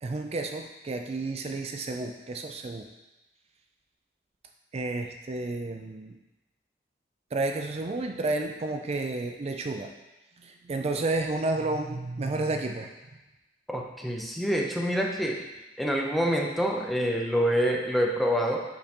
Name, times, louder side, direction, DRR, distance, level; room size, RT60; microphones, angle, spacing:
voice 1, 0.0-2.9 4.7-6.2 7.3-9.9 10.4-12.9, right 2 dB, 35° right, 4 dB, 0.4 m, -31 dB
voice 2, 13.7-15.4 15.8-18.6, equal, ahead, -1 dB, 0.6 m, -26 dB
6.7 x 5.2 x 2.9 m, 1.0 s
head